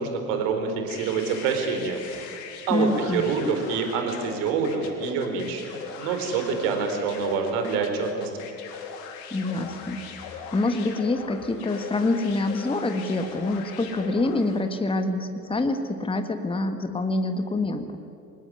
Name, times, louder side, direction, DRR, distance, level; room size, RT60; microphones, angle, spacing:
voice 1, 0.0-2.2 2.7-5.7 6.0-8.3, right 5 dB, 55° right, 5 dB, 4.4 m, -26 dB
sound 1, 0.9-14.7, left 6 dB, 60° left, 3.3 m, -40 dB
voice 2, 2.7-3.3 9.3-18.0, left 2 dB, 10° left, 8 dB, 1.7 m, -26 dB
25.5 x 19.5 x 9.9 m, 2.5 s
figure-of-eight pair, 65°, 50 cm